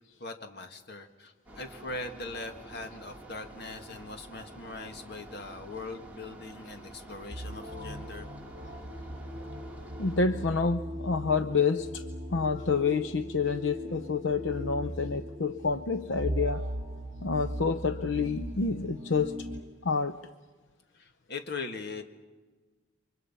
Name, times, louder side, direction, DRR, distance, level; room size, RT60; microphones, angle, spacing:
voice 1, 0.2-8.3 20.9-22.0, left 3 dB, 60° left, 6 dB, 2.0 m, -41 dB
sound 1, 1.5-10.2, right 1 dB, 10° right, 3.2 m, -49 dB
sound 2, 7.3-19.6, equal, 50° right, 3.6 m, -38 dB
voice 2, 10.0-12.0 12.3-16.6 17.2-19.5 19.8-20.2, left 4 dB, 80° left, 11 dB, 0.7 m, -28 dB
29.0 x 25.0 x 5.6 m, 1.3 s
head